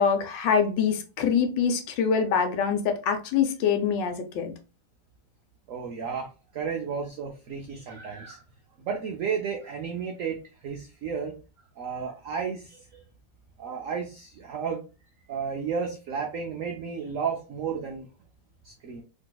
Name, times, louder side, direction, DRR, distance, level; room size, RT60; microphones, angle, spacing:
voice 1, 0.0-4.5, left 6 dB, 75° left, 6 dB, 1.2 m, -24 dB
voice 2, 5.7-8.4 8.8-11.3 11.8-13.0 13.6-14.8 15.3-18.1 18.6-19.0, right 6 dB, 80° right, 2 dB, 0.7 m, -33 dB
3.9 x 2.6 x 2.2 m, 0.32 s
omnidirectional pair, 2.0 m